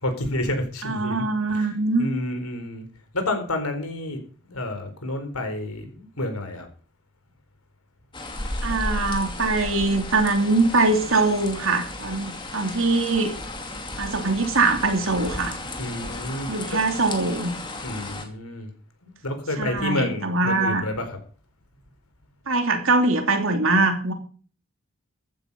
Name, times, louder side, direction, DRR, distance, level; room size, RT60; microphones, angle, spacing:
voice 1, 0.0-1.2 1.5-1.7 2.0-2.9 3.1-4.2 4.4-6.7 15.8-16.5 17.8-18.7 19.0-21.1, left 1 dB, 90° left, 6 dB, 4.4 m, -29 dB
voice 2, 0.8-2.1 8.6-13.3 14.0-15.6 16.5-17.5 19.6-20.8 22.5-24.1, right 3 dB, 70° right, 5 dB, 3.1 m, -22 dB
sound 1, 8.1-18.3, left 2 dB, 20° left, 2.5 m, -34 dB
14.5 x 9.9 x 5.5 m, 0.40 s
head